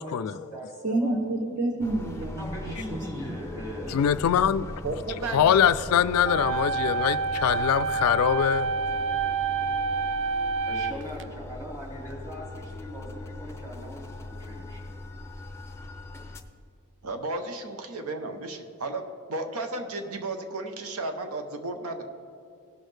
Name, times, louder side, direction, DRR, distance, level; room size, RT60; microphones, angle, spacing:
voice 1, 0.0-0.4 3.9-4.8 5.3-8.7, left 8 dB, 80° left, 0.3 m, -23 dB
voice 2, 0.8-3.4, right 2 dB, 35° right, 0.8 m, -29 dB
sound 1, 1.8-16.4, left 2 dB, 10° left, 0.5 m, -40 dB
voice 3, 2.4-4.0 10.6-14.8, equal, 15° right, 2.4 m, -39 dB
voice 4, 4.8-5.6 17.0-22.0, right 2 dB, 75° right, 0.8 m, -34 dB
sound 2, 6.2-11.2, right 5 dB, 55° right, 0.4 m, -28 dB
18.0 x 6.3 x 3.3 m
head